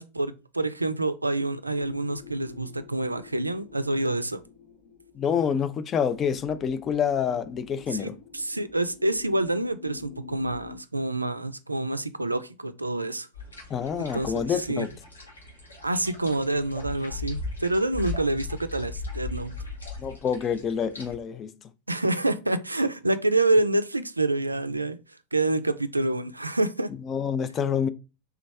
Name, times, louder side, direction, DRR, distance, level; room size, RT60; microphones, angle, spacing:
voice 1, 0.0-4.4 7.9-13.3 14.0-14.9 15.8-19.5 21.9-25.0 25.3-26.9, right 2 dB, 85° right, 0.3 m, -27 dB
sound 1, 1.7-10.8, left 7 dB, 55° left, 1.1 m, -48 dB
voice 2, 5.1-8.2 13.7-14.9 20.0-21.5 27.0-27.9, left 7 dB, 25° left, 0.3 m, -27 dB
sound 2, 13.3-21.1, left 3 dB, 80° left, 1.5 m, -38 dB
3.4 x 3.0 x 3.3 m
figure-of-eight pair, 90°, 0 cm